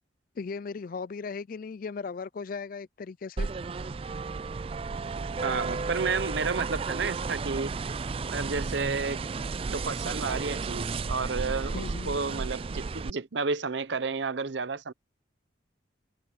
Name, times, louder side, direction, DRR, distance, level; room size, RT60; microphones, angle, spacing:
voice 1, 0.4-3.5 11.7-12.2, left 5 dB, 45° left, 0.4 m, -37 dB
sound 1, 3.4-13.1, right 4 dB, 30° right, 0.3 m, -33 dB
voice 2, 5.4-7.8 8.3-9.2 9.7-14.9, right 4 dB, 70° right, 0.8 m, -31 dB
head